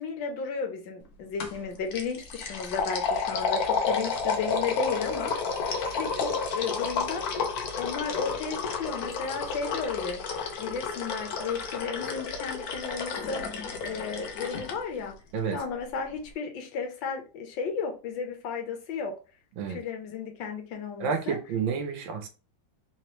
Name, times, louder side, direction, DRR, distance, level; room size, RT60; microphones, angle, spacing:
voice 1, 0.0-5.3 6.0-7.2 7.8-10.2 10.6-13.4 13.8-15.2 15.5-19.1 19.7-21.4, left 5 dB, 85° left, 1.6 m, -34 dB
sound 1, 1.4-1.6 1.9-14.7, left 5 dB, 65° left, 1.1 m, -31 dB
voice 2, 21.0-22.3, right 6 dB, 85° right, 1.6 m, -30 dB
3.9 x 3.2 x 2.9 m
omnidirectional pair, 2.0 m